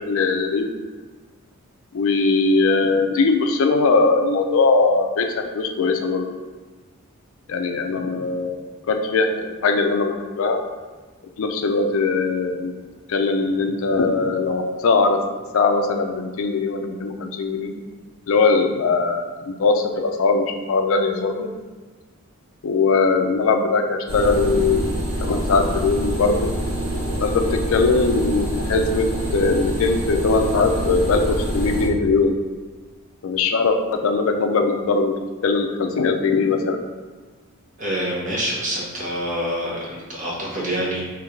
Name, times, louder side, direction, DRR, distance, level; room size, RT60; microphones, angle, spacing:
voice 1, 0.1-0.7 1.9-5.3 5.5-6.3 7.5-10.6 11.4-12.7 13.1-15.2 15.5-17.7 18.3-21.5 22.6-24.9 25.2-26.5 27.2-29.1 29.3-32.3 33.2-35.1 35.4-36.8, left 4 dB, 65° left, 4 dB, 0.4 m, -20 dB
sound 1, 24.1-31.9, right 1 dB, 60° right, 1.1 m, -26 dB
voice 2, 37.8-41.0, equal, 35° right, -5 dB, 0.9 m, -26 dB
3.1 x 2.5 x 4.4 m, 1.4 s
head